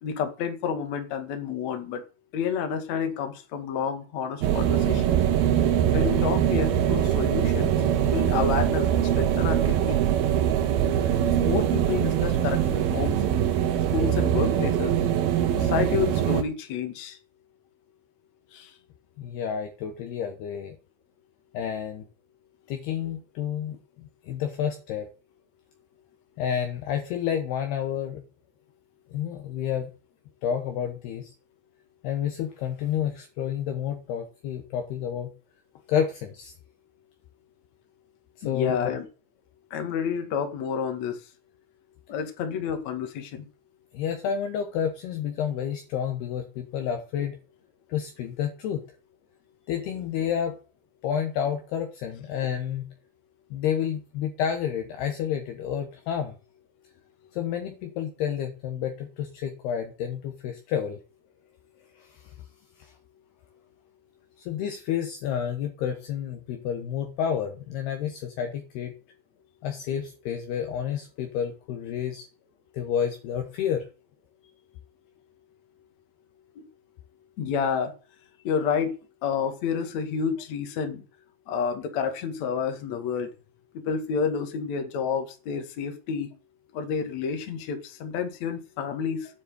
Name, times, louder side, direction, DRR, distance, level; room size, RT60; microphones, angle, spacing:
voice 1, 0.0-2.0 2.3-5.2 5.9-7.8 8.1-10.0 11.2-13.2 13.9-15.0 15.6-17.2 18.5-18.7 38.4-39.0 39.7-41.2 42.1-43.5 76.6-76.7 77.4-77.9 78.4-78.9 79.2-81.0 81.5-83.3 83.7-86.3 86.7-89.3, left 6 dB, 45° left, 6 dB, 2.7 m, -29 dB
sound 1, 4.4-16.4, right 10 dB, 70° right, 2.7 m, -23 dB
voice 2, 19.2-20.8 21.5-22.1 22.7-25.1 26.4-28.2 29.1-29.9 30.4-31.3 32.0-35.3 35.9-36.5 38.4-39.0 43.9-47.4 47.9-48.8 49.7-50.6 51.0-52.9 53.5-56.4 57.3-61.0 62.0-62.3 62.8-62.9 64.4-68.9 69.6-72.3 72.7-73.9, left 8 dB, 70° left, 5 dB, 2.9 m, -30 dB
9.9 x 7.5 x 9.2 m, 0.35 s
omnidirectional pair, 5.4 m